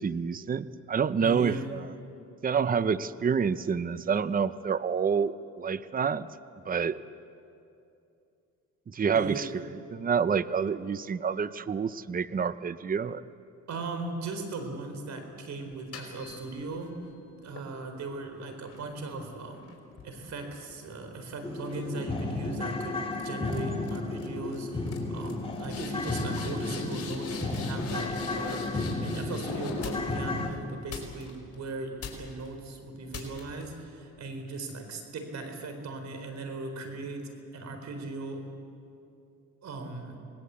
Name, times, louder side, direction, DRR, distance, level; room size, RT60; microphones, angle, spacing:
voice 1, 0.0-1.9 2.4-6.3 6.7-7.0 8.9-9.6 9.9-13.2, right 6 dB, 30° right, 15 dB, 0.7 m, -28 dB
voice 2, 1.2-1.7 9.1-9.6 13.7-17.0 17.4-19.6 20.0-28.6 29.0-38.5 39.6-40.2, right 2 dB, 65° right, 6 dB, 4.3 m, -38 dB
sound 1, 15.7-16.9 17.6-21.1 21.5-21.9 22.6-22.8 23.1-23.6 23.8-24.3 24.5-24.6 24.9-30.3 30.9-31.6 32.0-32.5 33.1-33.6, left 5 dB, 55° left, 5.2 m, -45 dB
sound 2, 20.5-20.6 21.0-21.1 21.4-30.5, left 2 dB, 20° left, 2.9 m, -33 dB
sound 3, 25.2-30.6, left 7 dB, 75° left, 2.7 m, -43 dB
26.5 x 20.0 x 8.3 m, 2.6 s
cardioid pair, 90°, 30 cm